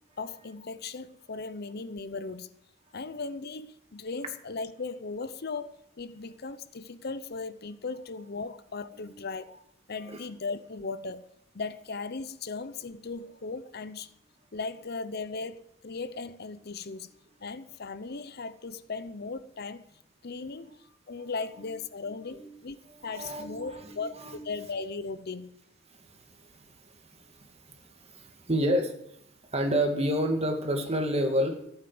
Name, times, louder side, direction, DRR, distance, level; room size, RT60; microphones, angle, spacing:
voice 1, 0.2-2.5 2.9-9.5 9.9-11.3 11.5-14.1 14.5-17.1 17.4-19.9 20.2-20.8 21.1-22.8 23.0-25.5, left 4 dB, 55° left, 0.8 m, -37 dB
voice 2, 21.2-21.7 21.9-22.5 22.8-24.4 26.0-29.2 29.5-31.6, equal, 35° right, 2.3 m, -31 dB
15.0 x 9.1 x 7.8 m
head